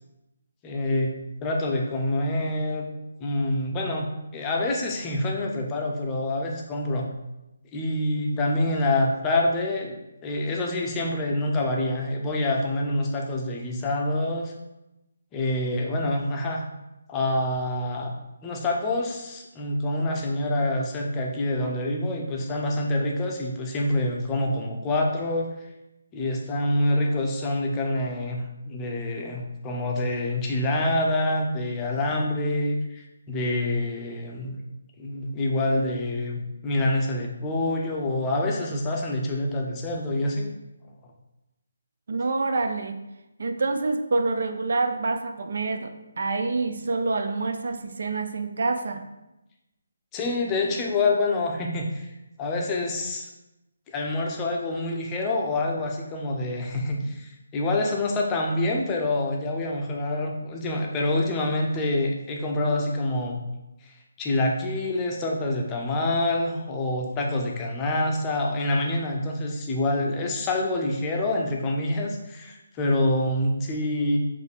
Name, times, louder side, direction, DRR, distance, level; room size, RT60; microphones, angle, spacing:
voice 1, 0.6-2.8 3.2-7.1 7.7-14.5 15.3-16.6 17.1-18.1 18.4-25.5 26.1-34.6 35.0-40.5 41.0-41.1 50.1-52.1 52.4-53.3 53.9-63.4 63.8-74.2, left 1 dB, 15° left, 0 dB, 0.6 m, -26 dB
voice 2, 42.1-43.0 43.4-49.0, right 3 dB, 60° right, 7 dB, 0.4 m, -27 dB
4.3 x 2.6 x 3.5 m, 0.95 s
figure-of-eight pair, 145°, 0 cm